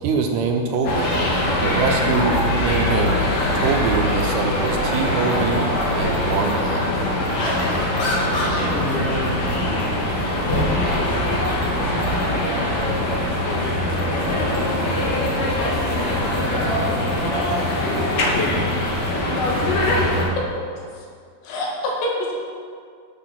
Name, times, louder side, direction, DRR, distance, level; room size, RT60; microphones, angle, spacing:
voice 1, 0.0-1.1 1.6-3.2 3.5-5.7 5.9-6.9, right 4 dB, 75° right, 3 dB, 2.7 m, -23 dB
sound 1, 0.8-20.3, left 1 dB, 60° left, 2.9 m, -22 dB
voice 2, 7.3-10.7 11.0-11.5 11.7-16.1 16.7-17.9, left 1 dB, 40° left, -5 dB, 2.7 m, -32 dB
voice 3, 21.4-22.3, left 2 dB, 90° left, -2 dB, 4.0 m, -25 dB
9.6 x 8.3 x 5.8 m, 2.2 s
omnidirectional pair, 4.9 m